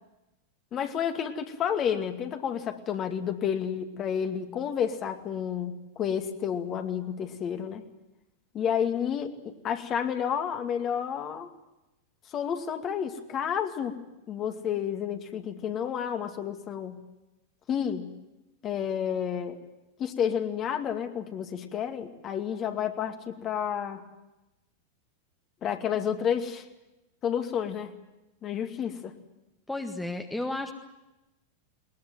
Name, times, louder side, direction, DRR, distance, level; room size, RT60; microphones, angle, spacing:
voice 1, 0.7-7.8 8.5-11.5 12.3-14.0 14.3-17.0 17.7-18.1 18.6-19.6 20.0-24.0 25.6-26.6 27.2-27.9 28.4-29.1, left 8 dB, 30° left, 7 dB, 2.3 m, -30 dB
voice 2, 29.7-30.7, left 2 dB, 5° left, 6 dB, 1.7 m, -32 dB
21.5 x 21.0 x 9.3 m, 0.97 s
figure-of-eight pair, 90°, 0 cm